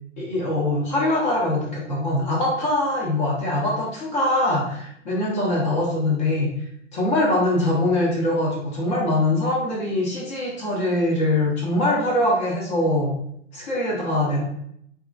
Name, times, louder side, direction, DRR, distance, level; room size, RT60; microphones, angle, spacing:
voice 1, 0.2-6.5 6.9-13.1 13.5-14.4, left 1 dB, 40° left, -4 dB, 0.8 m, -23 dB
2.7 x 2.5 x 2.4 m, 0.73 s
hypercardioid pair, 125°, 37 cm